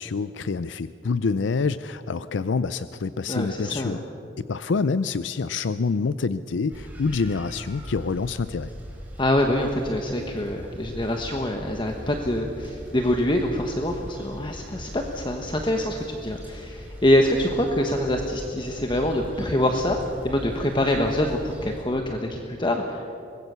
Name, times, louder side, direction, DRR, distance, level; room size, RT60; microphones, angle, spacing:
voice 1, 0.0-4.0 4.4-8.7, left 4 dB, 85° left, 14 dB, 0.5 m, -27 dB
voice 2, 3.3-4.0 9.2-20.0 20.2-23.1, left 1 dB, 25° left, 3 dB, 1.2 m, -25 dB
sound 1, 6.7-21.8, equal, 10° right, 4.6 m, -40 dB
24.0 x 20.5 x 6.9 m, 2.6 s
head